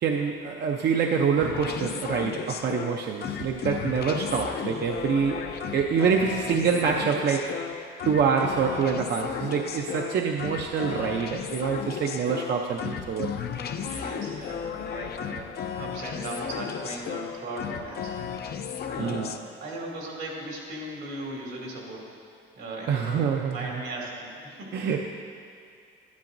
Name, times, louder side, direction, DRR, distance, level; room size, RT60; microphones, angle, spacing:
voice 1, 0.0-5.4 5.7-13.3 19.0-19.3 22.9-23.7 24.7-25.0, right 6 dB, 55° right, 2 dB, 0.6 m, -26 dB
sound 1, 1.4-19.4, left 7 dB, 55° left, 0.5 m, -34 dB
voice 2, 13.7-18.1 18.7-22.0 22.5-24.7, right 1 dB, 85° right, -3 dB, 2.5 m, -38 dB
11.5 x 10.5 x 2.6 m, 2.4 s
cardioid pair, 90°, 20 cm